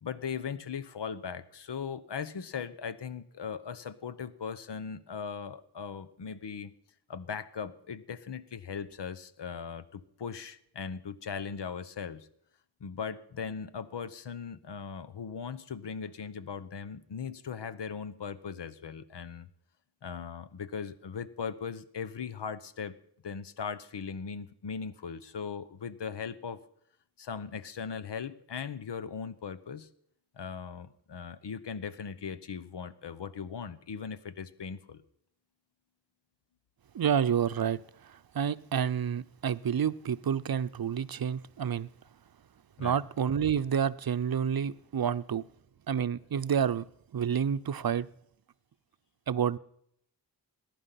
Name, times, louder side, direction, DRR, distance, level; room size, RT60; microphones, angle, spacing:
voice 1, 0.0-6.7 7.1-12.3 12.8-19.5 20.0-22.9 23.2-26.6 27.2-29.9 30.3-35.0 42.8-43.0, left 6 dB, 90° left, 1.0 m, -39 dB
voice 2, 36.9-37.8 38.1-41.9 42.8-45.4 45.9-46.9 47.1-48.1 49.3-49.6, right 8 dB, 60° right, 0.6 m, -29 dB
20.0 x 10.5 x 5.8 m
wide cardioid pair, 65°, 41 cm